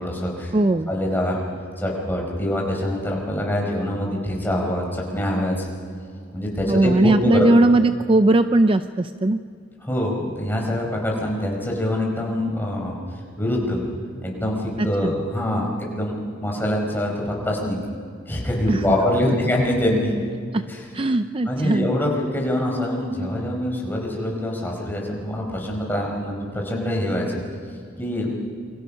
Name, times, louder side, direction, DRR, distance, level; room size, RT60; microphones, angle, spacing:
voice 1, 0.0-0.5 0.9-1.4 1.8-5.7 6.3-7.5 9.8-13.8 14.2-16.1 16.4-17.8 18.3-20.1 20.7-20.9 21.4-27.4 28.0-28.4, left 1 dB, 10° left, -1 dB, 4.9 m, -24 dB
voice 2, 0.5-0.9 6.7-9.4 14.8-15.1 18.7-18.8 19.3-19.4 20.5-20.6 20.9-21.9, right 2 dB, 30° right, 10 dB, 0.5 m, -19 dB
28.0 x 24.0 x 5.7 m, 2.3 s
head